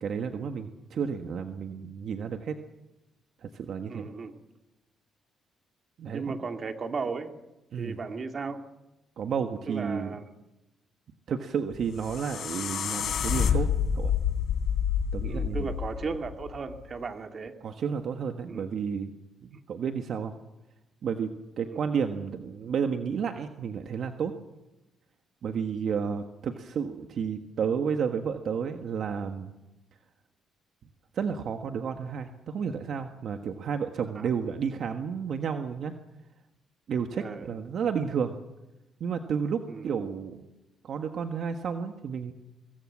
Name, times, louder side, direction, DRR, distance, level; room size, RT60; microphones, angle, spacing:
voice 1, 0.0-2.5 3.4-4.1 6.0-6.4 7.7-8.0 9.2-10.1 11.3-13.7 13.9-14.1 15.1-15.7 17.6-19.1 19.4-20.3 21.0-21.3 21.6-24.3 25.4-29.5 31.1-35.9 36.9-38.3 39.0-40.5 40.8-42.3, right 6 dB, 60° right, 6 dB, 1.5 m, -31 dB
voice 2, 3.9-4.4 6.1-7.3 7.8-8.6 9.7-10.2 15.3-17.6 18.5-18.7 21.7-21.8 34.1-34.3 37.2-37.5 39.7-39.9, right 4 dB, 40° right, 5 dB, 2.4 m, -35 dB
sound 1, 11.7-16.8, left 8 dB, 60° left, 3.3 m, -28 dB
24.5 x 21.0 x 7.4 m, 0.99 s
cardioid pair, 110°, 0 cm